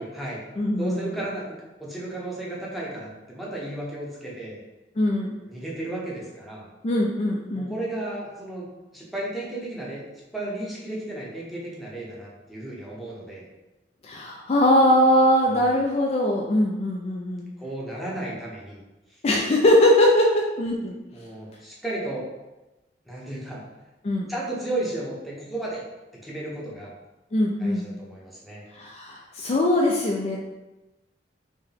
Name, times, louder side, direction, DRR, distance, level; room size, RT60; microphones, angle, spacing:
voice 1, 0.0-0.4 0.8-4.6 5.5-6.7 7.5-8.7 8.9-10.0 10.3-13.5 15.5-15.8 17.6-18.8 19.1-19.2 21.1-22.2 23.1-23.6 24.3-25.8 26.2-26.9 27.6-28.6, right 1 dB, ahead, -5 dB, 0.8 m, -34 dB
voice 2, 0.6-1.1 5.0-5.4 6.8-7.7 14.0-17.5 19.2-21.0 24.0-24.3 27.3-27.9 28.7-30.4, left 1 dB, 35° left, -1 dB, 0.4 m, -21 dB
4.6 x 2.1 x 3.3 m, 1.0 s
head